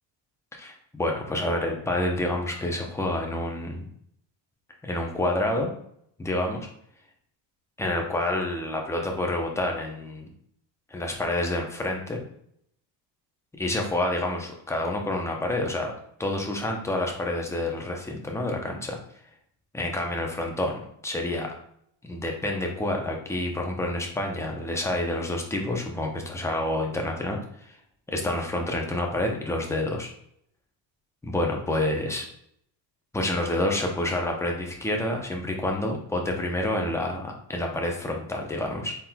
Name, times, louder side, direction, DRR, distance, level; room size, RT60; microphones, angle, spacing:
voice 1, 0.6-3.9 4.8-5.7 6.2-6.6 7.8-10.3 10.9-12.2 13.6-15.9 16.2-19.0 19.7-21.5 22.0-27.7 28.1-30.1 31.2-32.2 33.1-39.0, left 1 dB, 5° left, 1 dB, 0.6 m, -28 dB
4.3 x 3.8 x 2.2 m, 0.70 s
cardioid pair, 125°, 48 cm